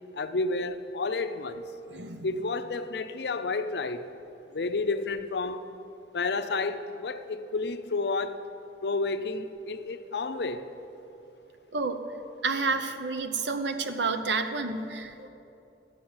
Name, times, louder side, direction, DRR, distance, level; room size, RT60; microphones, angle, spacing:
voice 1, 0.1-1.6 2.2-4.0 4.5-5.7 6.1-8.4 8.8-10.7, left 3 dB, 65° left, 0.6 m, -30 dB
voice 2, 1.9-2.3 11.7-12.0 12.4-15.3, right 4 dB, 80° right, 0.8 m, -30 dB
13.5 x 6.0 x 8.7 m
head